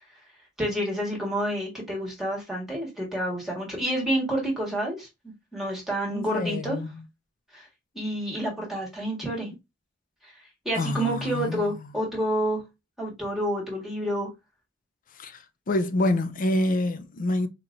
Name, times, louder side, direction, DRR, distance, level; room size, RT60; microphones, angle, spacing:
voice 1, 0.6-6.8 7.5-7.7 7.9-9.5 10.2-10.3 10.6-12.6 13.0-14.3, right 1 dB, ahead, 1.6 m, -29 dB
voice 2, 6.1-7.0 10.8-11.7 15.2-15.4 15.7-17.5, left 1 dB, 45° left, 0.5 m, -27 dB
4.1 x 2.9 x 2.5 m
head